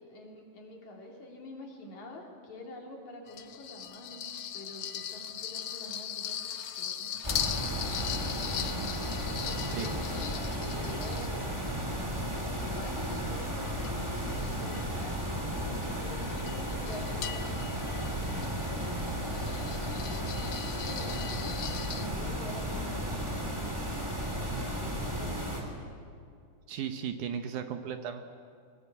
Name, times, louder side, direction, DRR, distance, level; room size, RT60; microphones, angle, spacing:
voice 1, 0.0-4.2 4.5-6.4 6.7-8.8 9.2-10.3 10.6-11.9 12.6-19.2 20.0-24.0 24.3-25.7, left 1 dB, 55° left, -1 dB, 4.3 m, -47 dB
sound 1, 3.3-11.8 12.3-22.1, left 9 dB, 75° left, 1.3 m, -40 dB
sound 2, 7.2-25.6, equal, 10° right, 2.9 m, -34 dB
voice 2, 26.7-28.2, right 8 dB, 70° right, 7 dB, 2.3 m, -36 dB
22.5 x 20.5 x 8.2 m, 2.3 s
omnidirectional pair, 4.0 m